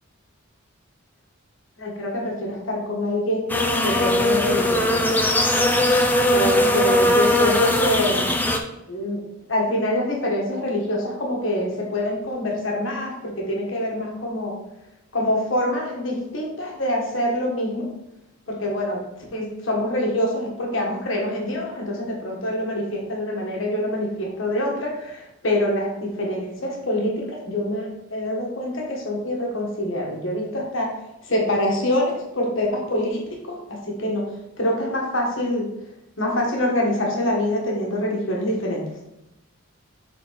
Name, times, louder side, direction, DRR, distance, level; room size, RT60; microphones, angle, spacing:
voice 1, 1.8-3.5 3.8-5.2 6.3-8.3 8.9-9.2 9.5-14.5 15.1-17.8 18.5-30.9 31.2-34.2 34.6-35.7 36.2-38.8, left 1 dB, 65° left, -1 dB, 1.5 m, -25 dB
sound 1, 3.5-8.6, left 1 dB, 10° left, 0.4 m, -19 dB
6.5 x 3.9 x 4.0 m, 0.90 s
head